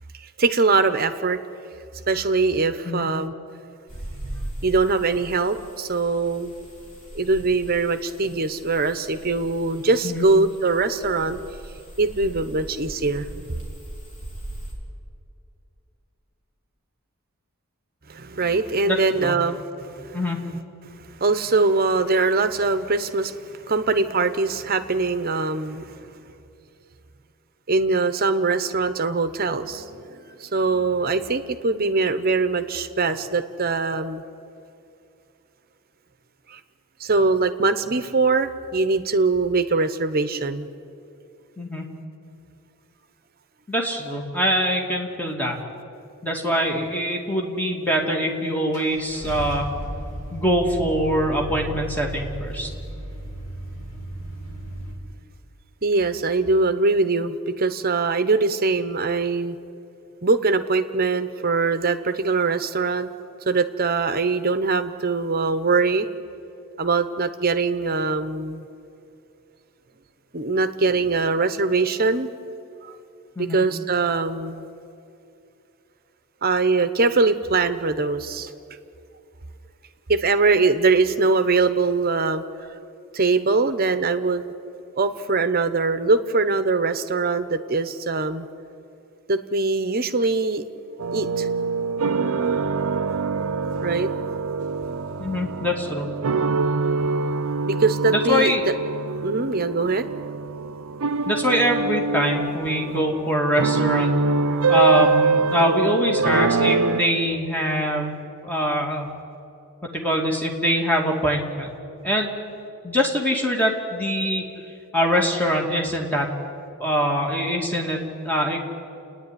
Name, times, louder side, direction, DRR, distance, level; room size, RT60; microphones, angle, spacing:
voice 1, 0.4-1.4 2.1-3.3 4.2-6.5 7.1-11.4 12.0-13.4 18.1-20.2 20.8-20.9 21.2-26.0 27.7-34.2 36.5-36.6 37.0-40.7 55.8-59.6 60.2-63.1 63.5-66.1 66.8-68.6 70.3-72.3 72.8-73.0 73.4-74.6 76.4-78.5 80.1-82.4 83.1-84.5 85.0-88.5 89.3-90.6 91.1-91.5 93.8-94.1 97.7-98.6 99.2-100.1, right 3 dB, 45° right, 10 dB, 0.9 m, -22 dB
sound 1, 3.9-14.7, right 1 dB, 35° left, 4.1 m, -39 dB
voice 2, 18.9-19.3 20.1-20.4 41.6-41.8 43.7-45.6 46.2-49.7 50.3-52.7 73.4-73.6 95.2-96.1 98.1-98.6 101.3-104.2 104.7-108.2 108.4-109.1 109.9-111.7 112.0-112.3 112.8-114.4 114.9-116.3 116.8-118.6, equal, 10° left, 0 dB, 2.3 m, -23 dB
Car / Engine starting, 48.0-48.1 48.7-54.9, right 1 dB, 60° left, 4.8 m, -34 dB
sound 2, 91.0-107.0, right 4 dB, 80° right, 0.7 m, -24 dB
29.5 x 9.9 x 9.9 m, 2.7 s
head